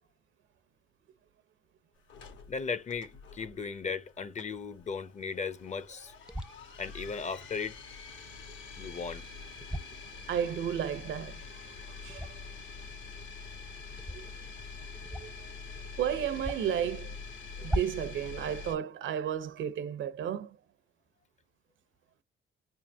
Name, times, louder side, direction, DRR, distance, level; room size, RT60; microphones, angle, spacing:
sound 1, 2.1-18.7, left 4 dB, 75° left, 1.4 m, -46 dB
voice 1, 2.5-6.1 6.8-7.8 8.8-9.2, left 5 dB, 35° left, 0.6 m, -36 dB
sound 2, 6.3-6.6 9.6-9.9 12.1-12.5 14.0-14.2 15.0-15.4 15.7-15.8 16.4-16.8 17.6-18.1, equal, 5° right, 0.4 m, -36 dB
voice 2, 10.3-11.4 12.0-12.3 14.1-14.3 15.1-15.3 16.0-17.2 17.6-20.6, right 9 dB, 75° right, 0.7 m, -33 dB
3.9 x 2.2 x 3.4 m
cardioid pair, 90°, 20 cm